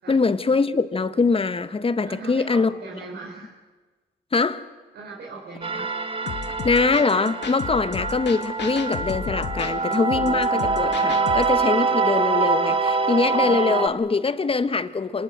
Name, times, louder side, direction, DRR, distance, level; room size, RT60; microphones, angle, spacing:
voice 1, 0.1-2.7 4.3-4.7 6.6-15.2, left 4 dB, 30° left, 1.2 m, -23 dB
voice 2, 2.0-3.6 4.9-5.8, right 3 dB, 70° right, 5.2 m, -38 dB
sound 1, 5.6-13.9, right 4 dB, 30° right, 1.5 m, -24 dB
sound 2, 6.3-11.6, left 8 dB, 70° left, 1.7 m, -34 dB
26.0 x 20.0 x 7.9 m
cardioid pair, 70°, 18 cm